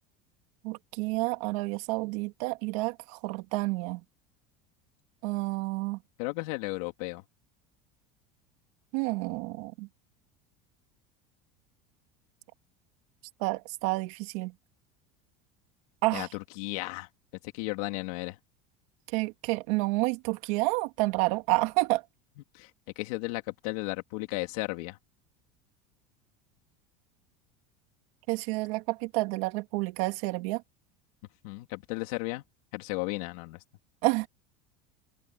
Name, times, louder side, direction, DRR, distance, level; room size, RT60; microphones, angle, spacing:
voice 1, 0.6-4.0 5.2-6.0 8.9-9.9 13.4-14.5 16.0-16.3 19.1-22.0 28.3-30.6 34.0-34.3, right 24 dB, 70° right, 2.6 m, -29 dB
voice 2, 6.2-7.2 16.1-17.1 17.5-18.4 22.5-22.7 23.0-25.0 31.4-32.4 32.7-33.6, left 23 dB, 75° left, 3.1 m, -34 dB
cardioid pair, 155°, 19 cm